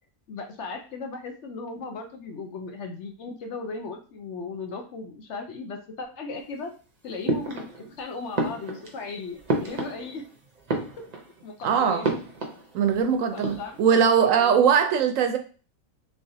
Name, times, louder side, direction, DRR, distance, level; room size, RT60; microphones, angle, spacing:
voice 1, 0.3-6.7 7.0-10.2 11.0-11.1 11.4-12.1 13.3-14.6, left 4 dB, 65° left, 0.8 m, -37 dB
sound 1, 7.3-8.0 8.3-10.3 10.6-11.4 12.0-13.0 13.3-13.8, right 2 dB, 40° right, 0.6 m, -30 dB
voice 2, 11.6-12.1 12.7-15.4, right 7 dB, 75° right, 0.9 m, -21 dB
3.5 x 3.3 x 2.7 m
omnidirectional pair, 1.5 m